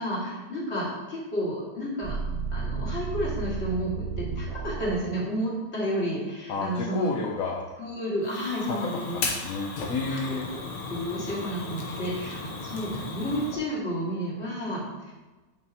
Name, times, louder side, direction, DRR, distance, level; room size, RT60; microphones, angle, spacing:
voice 1, 0.0-2.2 2.5-7.1 7.8-9.2 10.1-10.4 10.9-15.1, equal, 35° left, -6 dB, 2.4 m, -31 dB
sound 1, 2.0-4.9, right 5 dB, 50° right, 1.0 m, -32 dB
voice 2, 6.5-7.6 8.7-10.5, left 4 dB, 60° left, -1 dB, 1.1 m, -31 dB
Fire, 8.2-13.6, left 3 dB, 85° left, 1.7 m, -35 dB
10.5 x 5.4 x 3.0 m, 1.2 s
omnidirectional pair, 1.9 m